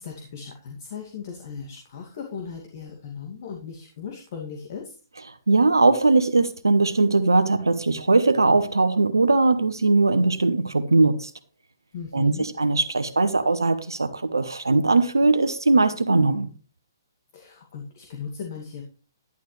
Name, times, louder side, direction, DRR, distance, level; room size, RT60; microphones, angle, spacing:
voice 1, 0.0-4.9 11.9-12.5 17.3-18.8, left 6 dB, 50° left, 2.3 m, -37 dB
voice 2, 5.5-11.3 12.1-16.5, right 3 dB, 90° right, 0.9 m, -20 dB
11.5 x 10.5 x 3.3 m
hypercardioid pair, 130°, 2 cm